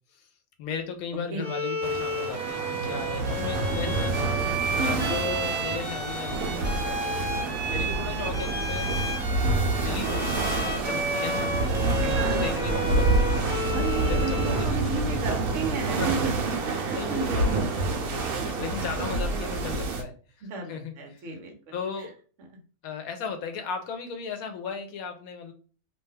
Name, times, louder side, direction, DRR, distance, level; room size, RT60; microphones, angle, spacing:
voice 1, 0.6-4.5 4.8-7.3 7.6-9.0 9.7-11.5 12.1-13.6 14.0-15.2 16.0-16.3 16.9-21.3 21.7-22.1 22.8-25.5, left 6 dB, 85° left, 6 dB, 1.1 m, -36 dB
Bowed string instrument, 1.4-14.8, right 1 dB, 10° right, 0.5 m, -32 dB
sound 1, 1.8-20.0, right 3 dB, 90° right, 1.1 m, -28 dB
voice 2, 4.8-5.1 12.2-12.6 13.7-17.7 19.0-19.4 20.5-21.7, right 3 dB, 65° right, 2 dB, 1.1 m, -33 dB
2.9 x 2.2 x 3.2 m, 0.40 s
omnidirectional pair, 1.5 m